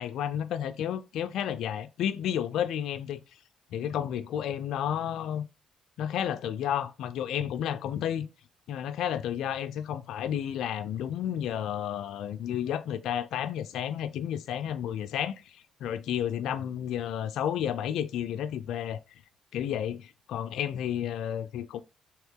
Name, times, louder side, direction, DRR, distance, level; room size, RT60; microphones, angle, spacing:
voice 1, 0.0-3.2 3.7-5.5 6.0-8.3 8.7-19.0 19.5-21.8, left 10 dB, 80° left, 0.4 m, -31 dB
3.5 x 2.9 x 3.6 m
supercardioid pair, 65°, 0 cm